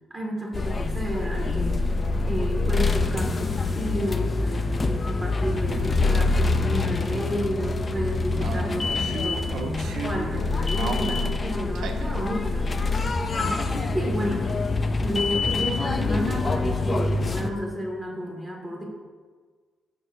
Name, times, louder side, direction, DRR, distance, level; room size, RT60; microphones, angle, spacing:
voice 1, 0.1-1.9 2.2-12.9 13.3-14.5 15.0-18.8, equal, 10° right, -2 dB, 2.0 m, -32 dB
sound 1, 0.5-17.5, left 3 dB, 25° left, 0.5 m, -25 dB
sound 2, 6.5-6.6 6.9-7.0 8.4-10.4 10.8-12.1, right 4 dB, 70° right, 0.9 m, -34 dB
16.5 x 6.5 x 2.7 m, 1.5 s
cardioid pair, 150°, 0 cm